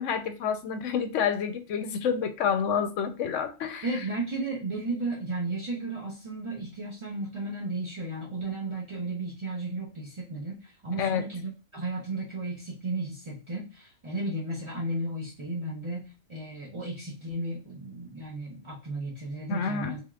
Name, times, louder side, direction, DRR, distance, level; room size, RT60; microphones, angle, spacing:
voice 1, 0.0-3.9 11.0-11.2 19.5-20.0, left 7 dB, 70° left, 0.9 m, -28 dB
voice 2, 3.8-20.0, right 2 dB, 35° right, 0.5 m, -34 dB
3.6 x 3.4 x 2.3 m
omnidirectional pair, 1.5 m